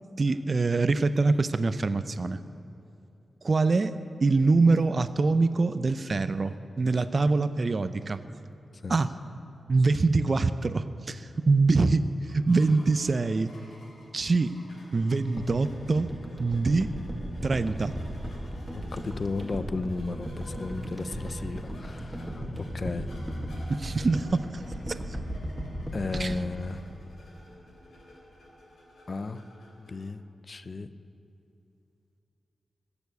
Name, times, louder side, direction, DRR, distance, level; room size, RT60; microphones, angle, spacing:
voice 1, 0.2-2.4 3.4-8.2 8.9-9.1 9.7-13.5 14.1-14.5 14.9-16.1 16.4-16.9 17.4-17.9 23.7-24.6 24.9-25.2 26.2-26.3, right 3 dB, 45° right, 12 dB, 0.5 m, -24 dB
sound 1, 12.2-30.0, left 1 dB, 75° left, 3.4 m, -53 dB
sound 2, 15.4-27.7 28.0-28.1, equal, 10° right, 2.0 m, -37 dB
voice 2, 18.7-23.1 25.9-26.9 29.1-29.4 29.8-30.2 30.5-30.9, left 3 dB, 40° left, 12 dB, 0.6 m, -34 dB
21.0 x 7.1 x 8.3 m, 2.8 s
wide cardioid pair, 95°, 0 cm